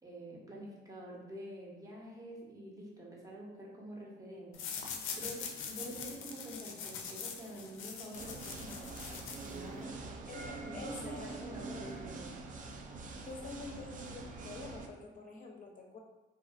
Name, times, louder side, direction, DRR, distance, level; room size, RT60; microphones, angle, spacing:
voice 1, 0.0-4.7 5.2-10.1 10.6-12.4, right 1 dB, 15° right, -4 dB, 0.8 m, -48 dB
sound 1, 4.5-9.8, left 6 dB, 90° left, 0.4 m, -43 dB
sound 2, 8.1-14.9, right 3 dB, 40° right, 0.4 m, -45 dB
voice 2, 10.3-11.3 13.1-16.0, left 3 dB, 45° left, 1 dB, 0.6 m, -47 dB
2.6 x 2.4 x 2.4 m, 1.1 s
cardioid pair, 90°, 20 cm